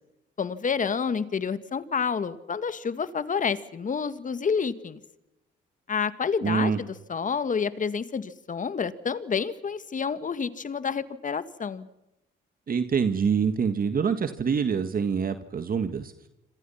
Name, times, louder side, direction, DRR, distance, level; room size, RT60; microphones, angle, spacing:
voice 1, 0.4-5.0 5.9-11.9, left 6 dB, 40° left, 13 dB, 2.0 m, -29 dB
voice 2, 6.4-6.8 12.7-16.1, right 6 dB, 45° right, 9 dB, 1.9 m, -25 dB
27.0 x 26.0 x 5.8 m, 0.89 s
cardioid pair, 90°, 20 cm